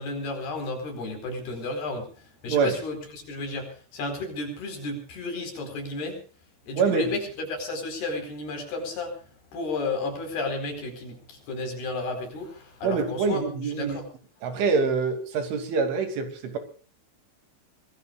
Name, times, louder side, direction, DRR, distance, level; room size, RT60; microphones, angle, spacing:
voice 1, 0.0-6.2 6.6-9.3 9.5-13.4 13.8-14.0, left 2 dB, 55° left, 4 dB, 6.3 m, -33 dB
voice 2, 6.8-7.1 12.8-14.0 14.4-16.6, right 5 dB, 75° right, 7 dB, 5.0 m, -25 dB
25.0 x 20.0 x 2.4 m, 0.39 s
omnidirectional pair, 5.7 m